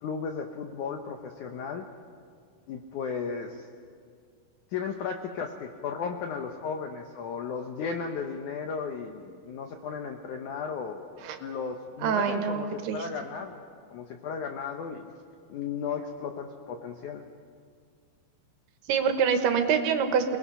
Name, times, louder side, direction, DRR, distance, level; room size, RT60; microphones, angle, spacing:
voice 1, 0.0-1.9 2.7-3.7 4.7-13.6 13.9-15.1 15.5-17.2, left 6 dB, 80° left, 4 dB, 1.8 m, -35 dB
voice 2, 12.0-13.1 18.9-20.4, right 7 dB, 75° right, 7 dB, 3.1 m, -25 dB
28.5 x 19.5 x 5.6 m, 2.1 s
omnidirectional pair, 4.8 m